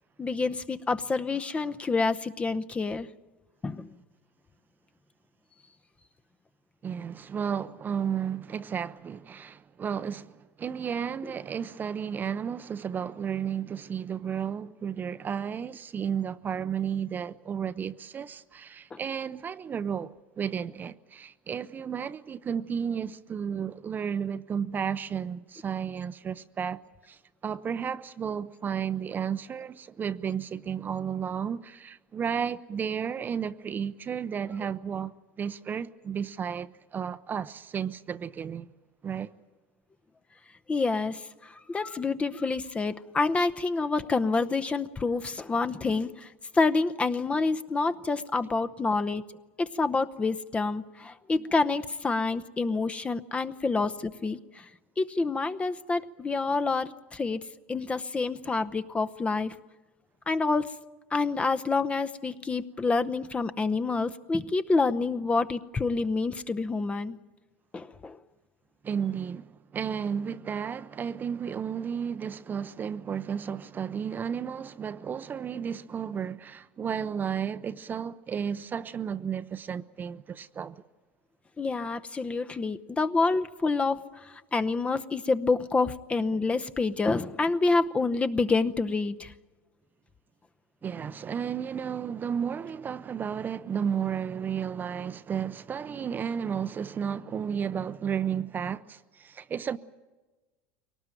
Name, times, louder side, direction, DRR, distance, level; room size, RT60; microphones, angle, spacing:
voice 1, 0.2-3.1 3.6-3.9 18.9-19.0 40.7-46.3 46.5-49.2 49.6-54.7 55.0-57.4 57.7-59.5 60.3-60.7 61.1-67.2 67.7-68.2 81.6-84.0 84.5-89.3, left 3 dB, 20° left, 0.8 m, -27 dB
voice 2, 6.8-38.7 39.0-39.3 68.8-80.7 90.8-99.8, right 7 dB, 30° right, 0.6 m, -33 dB
23.0 x 18.5 x 9.1 m
supercardioid pair, 110°, 7 cm